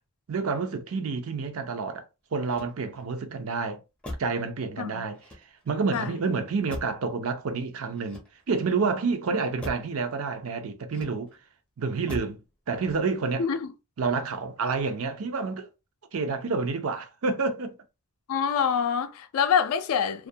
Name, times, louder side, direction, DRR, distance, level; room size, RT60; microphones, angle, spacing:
voice 1, 0.3-2.0 2.3-3.8 4.2-5.2 5.7-8.2 8.5-11.3 11.8-12.4 12.7-13.5 14.0-15.7 16.1-17.7, right 4 dB, 70° right, 0.5 m, -28 dB
Motor vehicle (road), 2.4-3.2 4.0-4.5 5.1-5.8 6.7-7.1 7.9-8.7 9.6-10.0 10.9-11.5 12.1-12.5 12.8-13.3, left 1 dB, 5° left, 0.5 m, -41 dB
voice 2, 18.3-20.3, left 7 dB, 75° left, 0.4 m, -26 dB
2.3 x 2.1 x 2.7 m
head